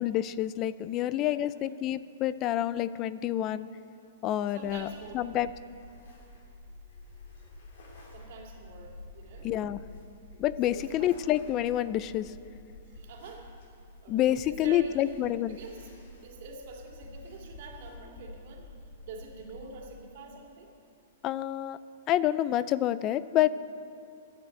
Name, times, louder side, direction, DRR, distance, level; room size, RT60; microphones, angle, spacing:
voice 1, 0.0-3.7 4.2-4.9 5.1-5.5 9.4-9.8 10.4-12.3 14.1-15.6 21.2-21.8 22.1-23.5, left 12 dB, 25° left, 17 dB, 0.3 m, -28 dB
voice 2, 1.0-1.5 4.5-5.1 8.1-9.5 10.7-11.1 12.9-13.5 14.0-14.9 15.5-15.9 16.2-18.7 19.0-20.7, right 4 dB, 50° right, 0 dB, 2.2 m, -46 dB
sound 1, 4.6-19.8, left 2 dB, 70° left, 3.1 m, -49 dB
12.5 x 9.3 x 7.7 m, 2.5 s
hypercardioid pair, 165°, 0 cm